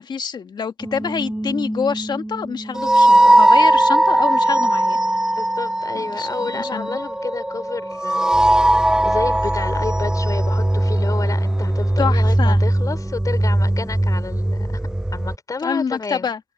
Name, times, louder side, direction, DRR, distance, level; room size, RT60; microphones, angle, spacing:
voice 1, 0.0-5.0 6.1-7.0 12.0-12.6 15.6-16.4, left 6 dB, 75° left, 1.7 m, -26 dB
sound 1, 0.8-15.4, right 1 dB, 10° right, 0.5 m, -19 dB
voice 2, 5.4-8.8 9.0-14.8 15.1-16.3, left 4 dB, 50° left, 4.3 m, -30 dB
cardioid pair, 50°, 8 cm